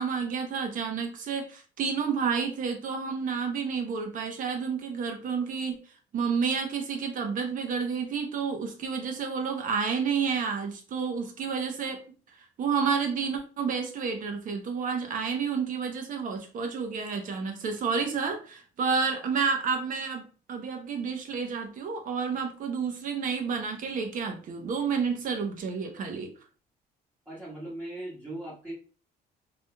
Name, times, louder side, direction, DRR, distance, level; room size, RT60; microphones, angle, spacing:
voice 1, 0.0-5.8 6.1-12.0 12.6-20.2 20.5-26.3, right 5 dB, 50° right, 4 dB, 0.8 m, -30 dB
voice 2, 27.2-28.7, right 1 dB, 10° right, -9 dB, 1.3 m, -39 dB
3.3 x 2.8 x 2.2 m, 0.37 s
cardioid pair, 110°, 17 cm